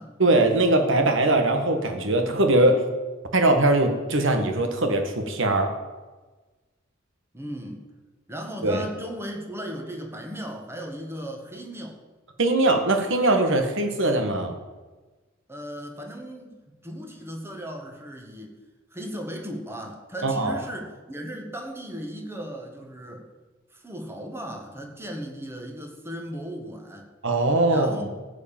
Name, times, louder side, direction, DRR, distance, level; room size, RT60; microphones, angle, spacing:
voice 1, 0.2-2.8 3.3-5.7 8.6-8.8 12.4-14.6 20.2-20.6 27.2-28.1, right 2 dB, 65° right, 5 dB, 1.8 m, -21 dB
voice 2, 7.3-7.8 8.3-12.0 15.5-18.6 18.9-23.3 23.7-27.1 27.7-28.1, equal, 10° right, 3 dB, 1.6 m, -36 dB
15.0 x 5.1 x 8.9 m, 1.3 s
head